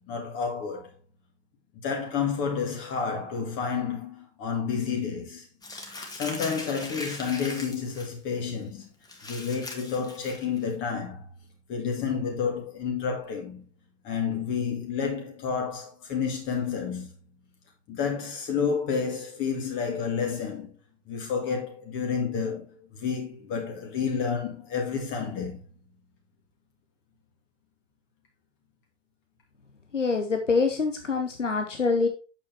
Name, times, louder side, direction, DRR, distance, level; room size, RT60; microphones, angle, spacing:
voice 1, 0.1-0.9 1.7-5.5 6.1-8.9 9.2-11.3 11.7-13.6 14.0-17.1 17.9-20.8 21.1-25.6, left 6 dB, 30° left, 2.1 m, -30 dB
Crumpling crinkling, 5.6-8.1 8.5-8.6 9.0-10.7, left 2 dB, 10° left, 1.7 m, -39 dB
voice 2, 29.9-32.1, left 4 dB, 85° left, 0.9 m, -25 dB
8.4 x 7.1 x 2.8 m
figure-of-eight pair, 95°, 36 cm